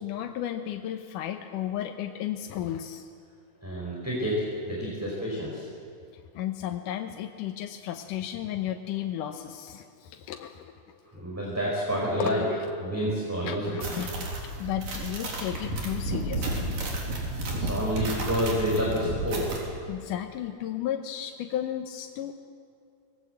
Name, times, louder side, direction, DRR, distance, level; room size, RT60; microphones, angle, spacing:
voice 1, 0.0-3.1 6.4-11.0 12.2-12.7 13.4-14.3 14.6-16.7 19.9-22.3, left 11 dB, 75° left, 5 dB, 2.4 m, -34 dB
voice 2, 3.6-5.6 11.1-12.4 12.8-13.7 17.4-19.5, equal, 5° right, -4 dB, 4.6 m, -29 dB
sound 1, 13.8-19.6, right 1 dB, 90° right, 5.2 m, -32 dB
26.0 x 20.0 x 8.0 m, 2.4 s
omnidirectional pair, 3.8 m